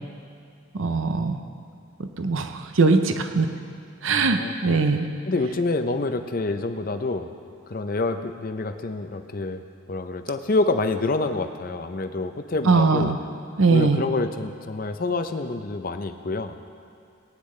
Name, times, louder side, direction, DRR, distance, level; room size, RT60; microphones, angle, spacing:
voice 1, 0.7-1.4 2.0-3.5 4.0-5.1 12.7-13.2 13.6-14.0, right 4 dB, 70° right, 7 dB, 0.6 m, -21 dB
voice 2, 4.0-4.8 5.3-7.3 7.7-9.6 9.9-13.1 13.7-16.5, left 3 dB, 40° left, 8 dB, 0.5 m, -27 dB
18.5 x 9.9 x 3.2 m, 2.3 s
head